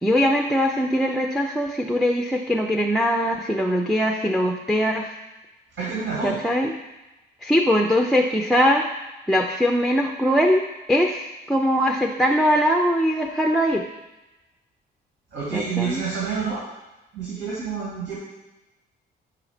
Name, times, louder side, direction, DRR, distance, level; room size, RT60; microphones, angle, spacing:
voice 1, 0.0-5.2 6.2-6.7 7.4-8.8 9.3-10.6 10.9-13.8 15.5-16.0, equal, ahead, 2 dB, 0.4 m, -21 dB
voice 2, 5.8-6.4 15.3-16.6 17.1-18.2, right 5 dB, 80° right, -7 dB, 1.9 m, -28 dB
5.0 x 3.8 x 4.9 m, 1.0 s
cardioid pair, 90°, 20 cm